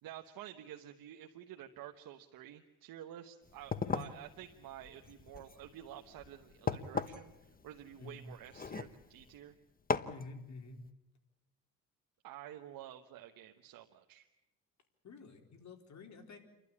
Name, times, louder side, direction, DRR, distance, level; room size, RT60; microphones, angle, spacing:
voice 1, 0.0-9.6 12.2-14.3, right 11 dB, 80° right, 4 dB, 1.3 m, -50 dB
sound 1, 3.5-9.4 9.9-10.2, left 5 dB, 25° left, 1.1 m, -39 dB
voice 2, 10.0-10.8 15.0-16.4, left 4 dB, 55° left, 4 dB, 4.1 m, -49 dB
29.0 x 12.0 x 9.8 m, 0.97 s
cardioid pair, 85°, 34 cm